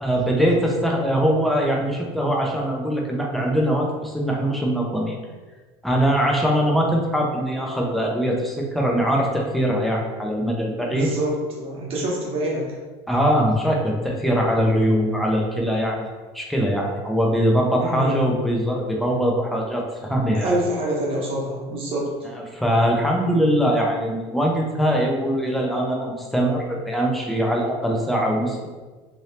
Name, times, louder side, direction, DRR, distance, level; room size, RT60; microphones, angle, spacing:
voice 1, 0.0-5.2 5.8-11.1 13.1-16.1 16.3-20.6 22.2-28.7, equal, ahead, -1 dB, 0.6 m, -22 dB
voice 2, 10.8-12.7 17.8-18.2 20.3-22.1, right 1 dB, 45° right, -4 dB, 1.1 m, -26 dB
2.8 x 2.6 x 3.3 m, 1.3 s
supercardioid pair, 110°, 13 cm